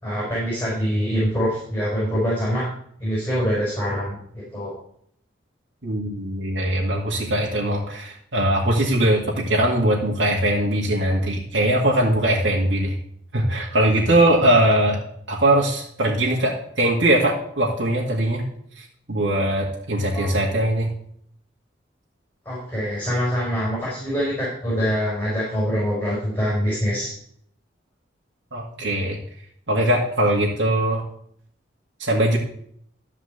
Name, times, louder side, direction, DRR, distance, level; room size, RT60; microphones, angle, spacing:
voice 1, 0.0-2.7 3.0-4.7 20.1-20.3 22.5-27.1, equal, 10° left, -6 dB, 5.2 m, -24 dB
voice 2, 5.8-13.0 13.3-15.0 15.3-18.4 18.8-20.9 28.5-29.2 29.7-31.0 32.0-32.4, right 1 dB, 85° right, -3 dB, 2.0 m, -21 dB
13.5 x 4.9 x 8.2 m, 0.68 s
head